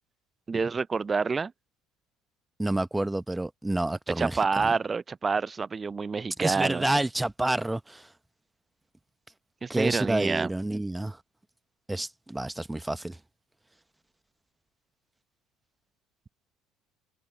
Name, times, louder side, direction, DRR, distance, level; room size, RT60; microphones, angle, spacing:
voice 1, 0.5-1.5 4.2-6.9 9.6-10.5, right 4 dB, 25° right, 0.6 m, -28 dB
voice 2, 2.6-4.7 6.4-8.1 9.7-11.2 11.9-13.2, right 1 dB, 10° right, 1.2 m, -29 dB
figure-of-eight pair, 60°, 0 cm